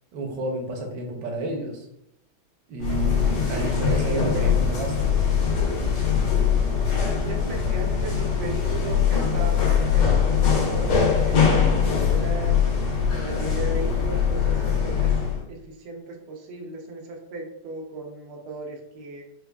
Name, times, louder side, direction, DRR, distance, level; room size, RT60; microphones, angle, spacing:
voice 1, 0.1-1.9 2.7-5.2, right 2 dB, 70° right, 2 dB, 1.1 m, -31 dB
sound 1, 2.8-15.4, left 6 dB, 90° left, 1.8 m, -22 dB
voice 2, 3.5-4.5 7.0-12.6 13.1-15.1 15.5-19.2, right 2 dB, 90° right, 1 dB, 1.6 m, -36 dB
4.6 x 2.3 x 2.2 m, 0.80 s
omnidirectional pair, 2.3 m